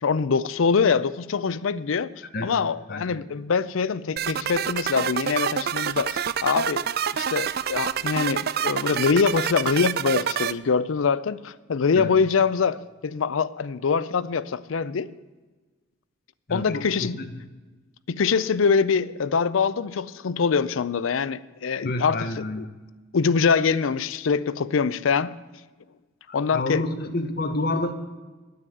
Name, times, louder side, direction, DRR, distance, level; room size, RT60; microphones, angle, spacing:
voice 1, 0.0-2.1 2.4-6.8 7.1-15.1 16.5-17.1 18.1-22.7 23.1-25.3 26.3-26.8, left 5 dB, 80° left, 17 dB, 0.5 m, -24 dB
sound 1, 4.2-10.5, right 8 dB, 50° right, 0.4 m, -27 dB
voice 2, 16.5-17.3 21.8-22.6 26.3-27.9, left 2 dB, 50° left, 8 dB, 1.0 m, -29 dB
9.5 x 9.2 x 7.9 m, 1.3 s
head